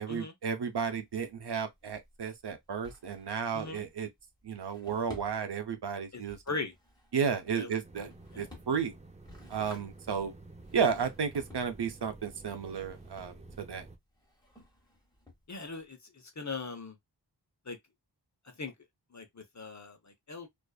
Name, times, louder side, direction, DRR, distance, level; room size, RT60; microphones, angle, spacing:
voice 1, 0.0-4.1 4.4-6.4 7.1-8.1 8.4-8.9 9.5-10.3 10.7-13.8, right 6 dB, 70° right, 0.6 m, -33 dB
Drawer open or close, 0.7-15.9, left 1 dB, 10° left, 1.4 m, -56 dB
voice 2, 6.1-6.7 7.5-7.7 8.3-8.5 15.5-17.0 17.7-17.8 18.4-18.7 19.1-20.5, left 3 dB, 40° left, 0.8 m, -40 dB
sound 1, 7.8-14.0, right 2 dB, 15° right, 0.5 m, -51 dB
2.5 x 2.4 x 2.3 m
wide cardioid pair, 60°, 42 cm